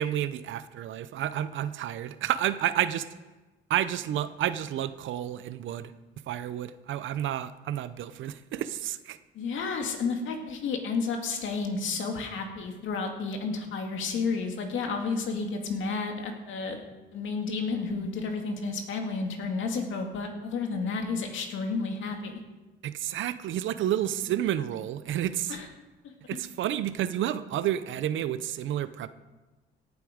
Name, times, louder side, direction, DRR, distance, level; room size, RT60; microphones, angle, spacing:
voice 1, 0.0-3.1 3.7-5.9 6.3-9.2 22.8-25.6 26.3-29.1, right 11 dB, 75° right, 14 dB, 0.7 m, -30 dB
voice 2, 9.3-16.8 17.1-22.4 25.5-25.7, left 4 dB, 80° left, 3 dB, 2.2 m, -31 dB
17.5 x 8.3 x 5.1 m, 1.2 s
cardioid pair, 90°, 20 cm